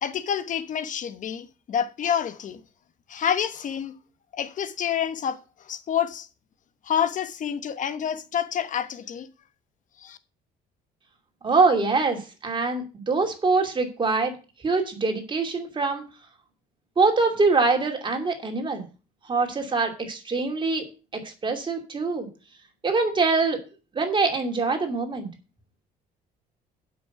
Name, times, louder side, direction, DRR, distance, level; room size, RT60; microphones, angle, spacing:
voice 1, 0.0-2.6 3.1-3.9 4.4-5.4 5.7-6.3 6.9-9.3 10.0-10.2, left 8 dB, 50° left, 1.2 m, -28 dB
voice 2, 11.4-14.3 14.6-16.0 17.0-18.8 19.3-20.8 21.1-22.3 22.8-23.6 23.9-25.3, right 3 dB, 30° right, 2.7 m, -24 dB
8.1 x 6.3 x 7.9 m
cardioid pair, 110°, 17 cm